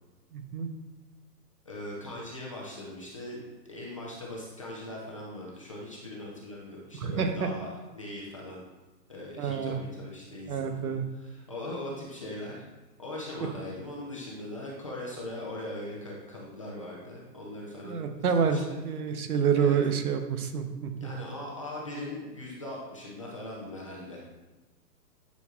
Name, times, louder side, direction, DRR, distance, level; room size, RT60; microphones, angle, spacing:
voice 1, 0.3-0.7 7.0-7.5 9.4-9.8 10.5-11.0 17.8-21.1, right 6 dB, 60° right, 6 dB, 1.0 m, -28 dB
voice 2, 1.6-8.6 9.1-12.6 13.0-18.0 18.3-18.8 19.5-19.8 21.0-24.2, left 1 dB, 20° left, -5 dB, 0.6 m, -40 dB
10.5 x 6.2 x 2.4 m, 1.1 s
hypercardioid pair, 165°, 50 cm